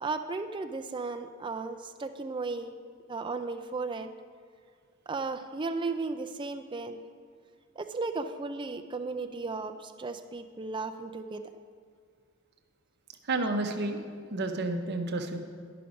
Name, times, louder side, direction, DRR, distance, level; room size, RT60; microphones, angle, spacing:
voice 1, 0.0-2.7 3.1-4.1 5.1-7.0 7.8-11.4, right 3 dB, 20° right, 7 dB, 0.4 m, -35 dB
voice 2, 13.3-14.0 14.3-15.4, right 2 dB, 50° right, 6 dB, 0.8 m, -30 dB
11.0 x 5.9 x 5.1 m, 2.1 s
head